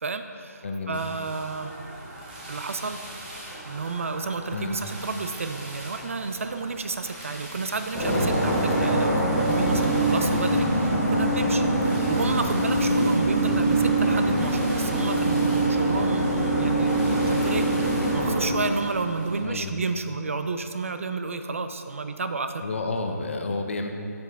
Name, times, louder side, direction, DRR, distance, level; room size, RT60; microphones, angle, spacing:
voice 1, 0.0-1.7 2.5-3.0 3.7-17.7 18.1-22.7, right 4 dB, 50° right, 8 dB, 0.4 m, -31 dB
voice 2, 0.6-1.0 4.5-4.7 8.1-8.2 9.6-9.9 19.4-19.7 22.6-23.9, left 3 dB, 45° left, 4 dB, 0.6 m, -31 dB
sound 1, 0.9-19.4, right 1 dB, 30° right, 1.7 m, -42 dB
sound 2, 7.9-18.5, right 1 dB, ahead, 0.8 m, -23 dB
7.6 x 7.1 x 3.4 m, 2.7 s
hypercardioid pair, 175°, 9 cm